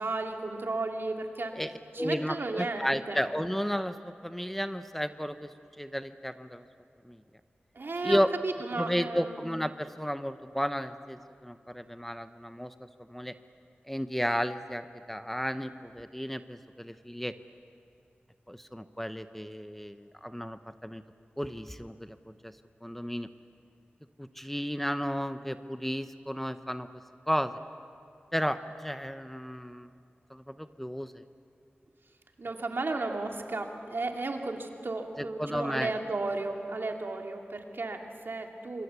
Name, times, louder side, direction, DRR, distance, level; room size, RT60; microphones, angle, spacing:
voice 1, 0.0-1.5 1.9-3.2 7.7-9.4 32.4-38.8, right 3 dB, 70° right, 3 dB, 2.6 m, -34 dB
voice 2, 1.5-5.5 5.8-6.7 7.0-7.2 8.0-8.3 8.7-12.7 13.1-13.3 13.9-17.3 18.5-21.0 21.4-22.5 22.8-23.3 24.2-26.9 27.3-27.6 28.3-29.9 30.3-31.2 35.2-35.9, equal, 5° left, 10 dB, 0.9 m, -33 dB
26.0 x 24.5 x 8.3 m, 2.6 s
wide cardioid pair, 55°, 4 cm